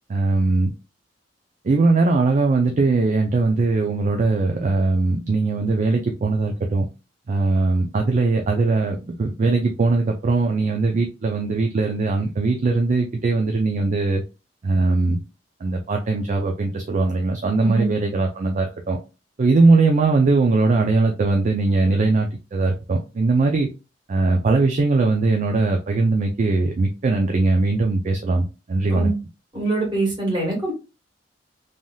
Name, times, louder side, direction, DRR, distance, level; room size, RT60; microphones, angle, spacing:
voice 1, 0.1-0.7 1.6-6.9 7.3-14.2 14.6-15.2 15.6-19.0 19.4-23.7 24.1-29.1, right 3 dB, 40° right, 3 dB, 0.4 m, -20 dB
voice 2, 17.6-17.9 28.9-29.1 29.5-30.7, right 2 dB, 25° right, -3 dB, 1.6 m, -23 dB
3.3 x 2.6 x 2.2 m, 0.30 s
head